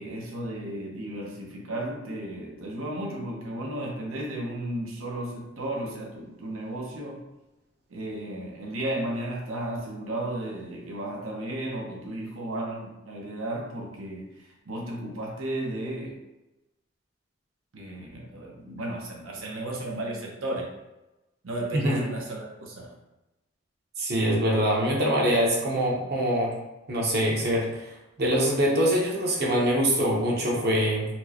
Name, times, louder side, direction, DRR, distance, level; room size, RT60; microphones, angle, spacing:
voice 1, 0.0-7.2 7.9-16.2 17.7-20.7 21.4-23.0, right 1 dB, 80° right, -1 dB, 0.8 m, -34 dB
voice 2, 21.7-22.1 24.0-26.5 26.9-31.1, equal, 50° right, -2 dB, 0.8 m, -24 dB
4.3 x 2.1 x 2.8 m, 0.97 s
head